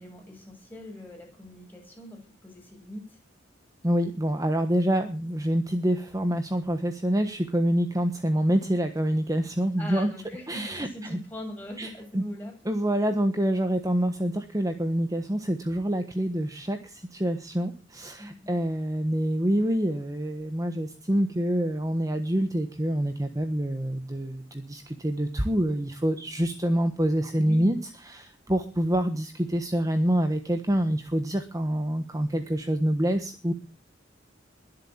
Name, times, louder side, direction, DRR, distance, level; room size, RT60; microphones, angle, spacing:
voice 1, 0.0-3.2 9.8-12.5 18.2-18.5 27.4-27.8, equal, 10° left, 0 dB, 7.8 m, -41 dB
voice 2, 3.8-10.1 10.5-11.2 11.8-12.2 12.6-27.8 28.0-33.5, equal, 20° right, 7 dB, 1.3 m, -26 dB
22.0 x 7.9 x 7.4 m, 0.37 s
head